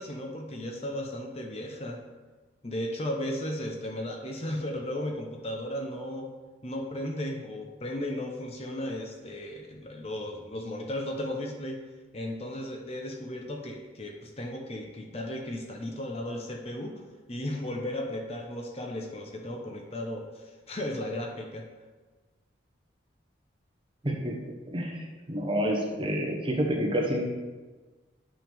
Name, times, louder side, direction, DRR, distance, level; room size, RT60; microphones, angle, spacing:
voice 1, 0.0-2.0 2.6-6.3 6.6-11.8 12.1-17.0 17.3-21.7, left 1 dB, 30° left, 2 dB, 0.8 m, -35 dB
voice 2, 24.0-24.4 24.7-25.0 25.3-27.3, equal, 25° right, 0 dB, 1.1 m, -28 dB
9.2 x 5.9 x 3.5 m, 1.3 s
head